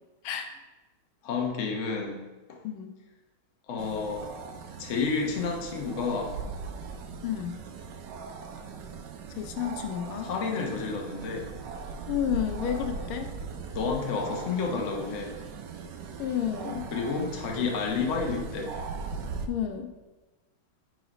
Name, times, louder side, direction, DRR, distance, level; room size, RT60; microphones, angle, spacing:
voice 1, 1.2-2.2 3.7-4.3 4.8-6.4 10.2-11.5 13.7-15.3 16.9-18.7, left 4 dB, 50° left, 1 dB, 0.9 m, -30 dB
sound 1, 3.8-19.5, right 4 dB, 75° right, 1.0 m, -39 dB
voice 2, 7.2-7.6 9.4-10.3 12.1-13.4 16.2-16.8 19.5-19.9, left 9 dB, 80° left, 6 dB, 1.4 m, -31 dB
6.2 x 3.9 x 5.1 m, 1.2 s
omnidirectional pair, 2.4 m